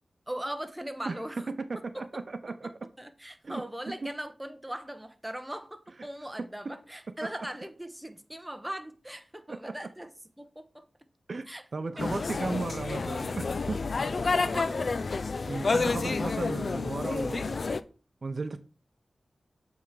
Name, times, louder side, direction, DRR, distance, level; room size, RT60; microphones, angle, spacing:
voice 1, 0.3-1.5 1.9-10.1 10.4-10.8 11.5-11.6 12.0-12.6 14.2-14.8, right 1 dB, 10° right, 0.7 m, -40 dB
voice 2, 1.1-2.7 3.4-3.6 6.4-6.7 9.5-9.7 11.3-13.8 15.5-17.6 18.2-18.6, right 3 dB, 55° right, 0.6 m, -35 dB
sound 1, 12.0-17.8, left 4 dB, 60° left, 0.4 m, -29 dB
7.5 x 3.5 x 4.8 m
wide cardioid pair, 80°, 0 cm